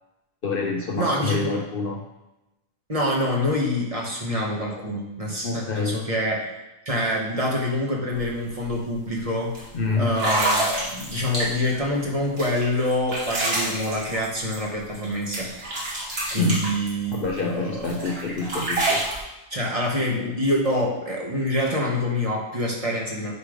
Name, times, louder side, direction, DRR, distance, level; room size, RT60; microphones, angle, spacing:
voice 1, 0.4-2.0 5.4-6.0 9.7-10.2 16.4-16.7 17.1-19.0, left 3 dB, 55° left, 2 dB, 0.9 m, -26 dB
voice 2, 1.0-1.5 2.9-6.4 6.8-9.5 10.0-15.5 16.3-17.9 19.5-23.3, left 1 dB, 30° right, -2 dB, 1.5 m, -26 dB
sound 1, 8.1-8.3 8.6-8.9 9.5-9.6 10.1-11.8 12.4-15.1 15.3-17.4 17.8-19.2, right 1 dB, 60° right, 1.9 m, -27 dB
9.6 x 3.3 x 5.0 m, 0.98 s
omnidirectional pair, 1.1 m